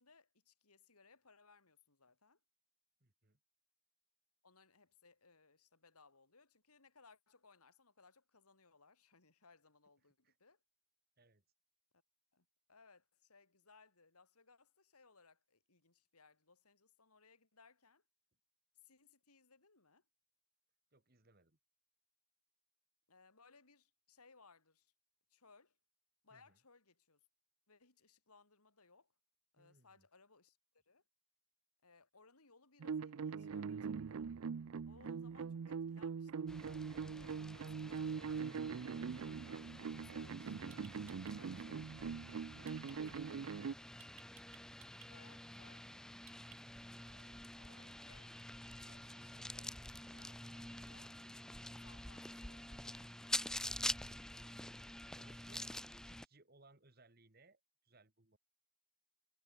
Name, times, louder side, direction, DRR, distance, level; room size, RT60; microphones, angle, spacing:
voice 1, 0.0-2.4 4.4-10.6 12.3-18.0 18.8-20.0 23.1-24.9 25.3-25.8 26.2-27.2 27.7-29.1 29.5-30.6 30.9-31.0 31.8-34.3 34.9-40.9 41.3-44.2 45.1-46.1 47.0-51.2 51.8-52.8, left 4 dB, 90° left, 3.9 m, -67 dB
voice 2, 3.0-3.4 10.2-10.4 11.2-11.4 20.9-21.6 26.3-26.6 29.6-30.1 54.2-54.7 55.1-55.7 56.1-58.4, right 2 dB, 45° right, 1.9 m, -67 dB
sound 1, 32.8-43.7, right 6 dB, 75° right, 0.4 m, -42 dB
sound 2, 36.5-56.3, left 1 dB, 5° left, 0.5 m, -48 dB
sound 3, 40.7-41.3 42.7-43.0 44.0-45.1 46.3-46.9, right 13 dB, 60° right, 2.0 m, -61 dB
head